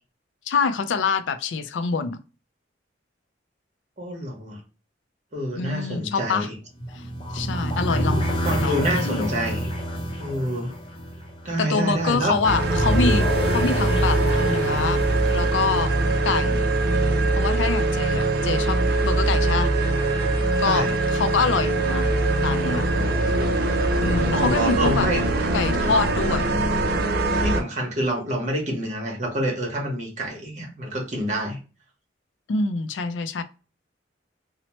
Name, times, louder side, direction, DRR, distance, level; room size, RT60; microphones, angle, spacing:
voice 1, 0.5-2.2 5.6-6.5 6.9-7.0 7.3-9.3 11.6-15.0 15.3-15.9 16.2-16.6 17.4-19.7 20.6-22.1 22.4-22.9 24.0-25.1 25.5-26.5 32.5-33.4, left 5 dB, 85° left, 0.4 m, -26 dB
voice 2, 4.0-4.6 5.3-6.6 7.9-8.0 8.4-9.7 10.2-10.8 11.4-12.3 20.6-20.9 24.3-25.2 27.4-31.6, right 1 dB, 40° right, 1.0 m, -27 dB
sound 1, 6.8-16.9, equal, 30° left, 0.7 m, -28 dB
sound 2, 12.4-27.6, right 2 dB, 60° right, 0.5 m, -22 dB
2.8 x 2.1 x 2.9 m
head